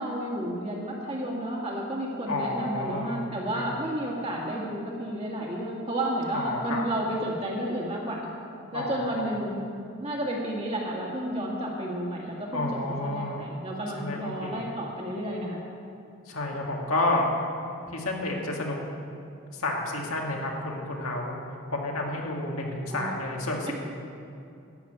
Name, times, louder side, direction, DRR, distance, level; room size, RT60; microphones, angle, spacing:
voice 1, 0.0-8.2 8.7-9.6 10.0-12.7 13.0-15.6 22.9-23.1 23.7-23.8, right 1 dB, 25° right, -2 dB, 1.9 m, -31 dB
voice 2, 2.3-3.2 3.6-3.7 6.3-6.9 8.7-9.3 12.5-13.4 14.0-14.6 16.3-17.3 17.9-18.8 19.5-21.4 21.7-23.7, left 2 dB, 80° left, -1 dB, 2.0 m, -30 dB
13.0 x 6.6 x 9.1 m, 2.6 s
head